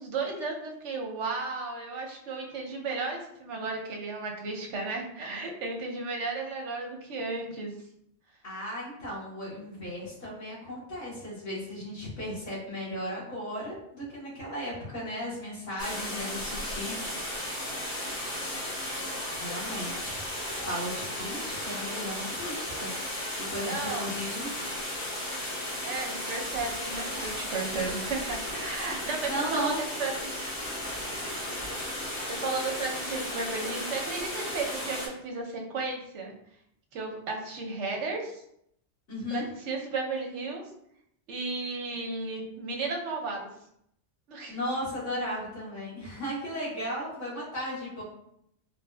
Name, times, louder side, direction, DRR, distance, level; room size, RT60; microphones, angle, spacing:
voice 1, 0.0-7.7 23.7-24.1 25.8-30.6 30.9-31.0 32.3-36.3 36.9-38.4 39.3-40.6 41.3-43.5 44.3-44.5, right 3 dB, 75° right, 1 dB, 1.0 m, -34 dB
voice 2, 8.4-17.6 19.4-20.2 20.5-24.5 29.3-29.8 39.1-39.5 44.5-48.0, equal, 80° left, -9 dB, 2.1 m, -36 dB
sound 1, 15.8-35.1, left 1 dB, 50° left, 1.4 m, -35 dB
4.6 x 2.5 x 2.2 m, 0.74 s
omnidirectional pair, 1.2 m